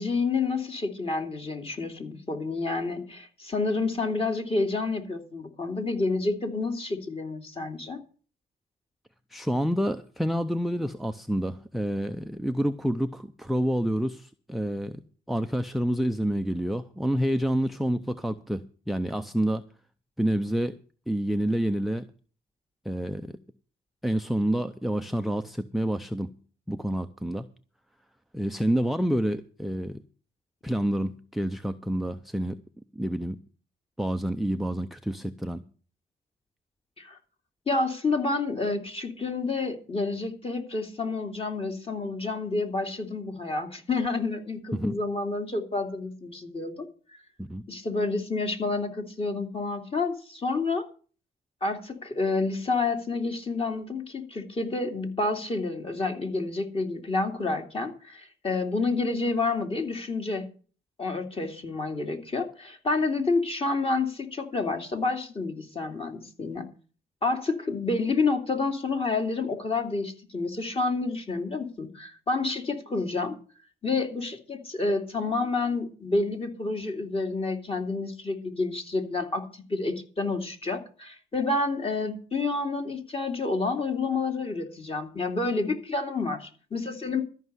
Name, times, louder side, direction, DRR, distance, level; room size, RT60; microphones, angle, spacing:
voice 1, 0.0-8.0 37.0-37.2 37.7-46.9 47.7-50.9 51.6-60.4 61.0-66.7 67.2-73.4 73.8-87.2, left 3 dB, 30° left, 4 dB, 2.6 m, -29 dB
voice 2, 9.3-15.0 15.3-19.6 20.2-20.8 21.1-22.1 22.8-23.4 24.0-26.4 26.7-27.5 28.3-30.0 30.6-32.6 32.9-33.4 34.0-35.6 44.7-45.0 47.4-47.6, equal, ahead, 7 dB, 0.6 m, -28 dB
13.5 x 5.5 x 9.5 m, 0.40 s
cardioid pair, 90°, 20 cm